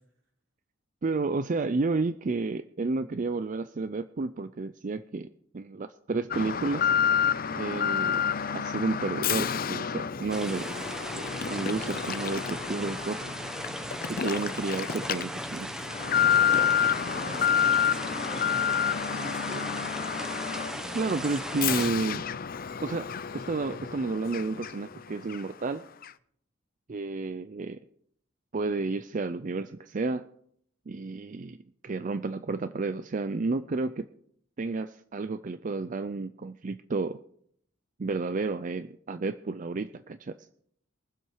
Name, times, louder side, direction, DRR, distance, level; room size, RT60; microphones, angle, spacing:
voice 1, 1.0-5.3 5.5-6.9 7.5-10.7 11.2-13.3 14.1-15.7 20.9-22.2 22.8-25.8 26.9-27.8 28.5-30.3 30.9-31.6 31.8-34.1 34.6-37.2 38.0-40.4, right 3 dB, 40° right, 12 dB, 0.4 m, -31 dB
Alarm, 6.3-25.0 25.3-25.4 26.0-26.1, left 8 dB, 45° left, 0.5 m, -29 dB
sound 1, 10.3-21.9, equal, 5° right, 0.9 m, -38 dB
voice 2, 17.1-18.7 19.0-19.8 21.3-21.4, right 1 dB, 65° right, -2 dB, 5.3 m, -44 dB
23.0 x 7.8 x 4.8 m, 0.66 s
head